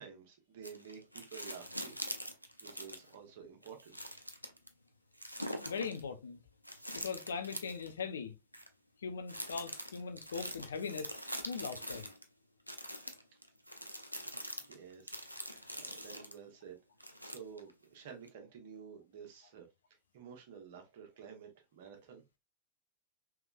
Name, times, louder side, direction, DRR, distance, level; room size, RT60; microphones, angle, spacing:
voice 1, 0.0-2.0 2.6-4.0 14.2-14.3 14.6-16.8 17.0-19.7 20.1-22.3, right 7 dB, 50° right, 1.0 m, -51 dB
sound 1, 0.6-3.1 3.6-4.7 5.2-6.0 6.6-7.9 8.5-8.7 9.3-12.2 12.7-16.4 17.0-17.7 18.3-18.4, equal, 90° right, 0.5 m, -44 dB
voice 2, 5.6-6.4 6.9-8.3 9.0-11.2 11.5-12.0, left 5 dB, 70° left, 0.5 m, -40 dB
3.5 x 3.1 x 2.4 m
figure-of-eight pair, 90°, 0 cm